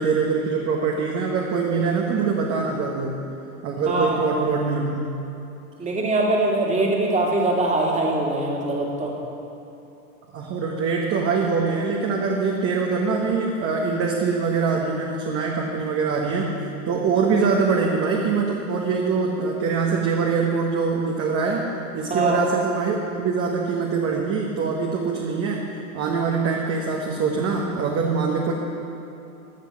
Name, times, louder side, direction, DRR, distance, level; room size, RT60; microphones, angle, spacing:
voice 1, 0.0-3.2 3.6-5.2 10.3-16.6 16.9-25.6 25.9-28.5, right 4 dB, 30° right, 0 dB, 1.2 m, -23 dB
voice 2, 3.9-4.2 5.8-9.1 22.1-22.4, right 2 dB, 15° right, -2 dB, 2.1 m, -22 dB
13.0 x 6.2 x 7.0 m, 2.8 s
hypercardioid pair, 110°, 44 cm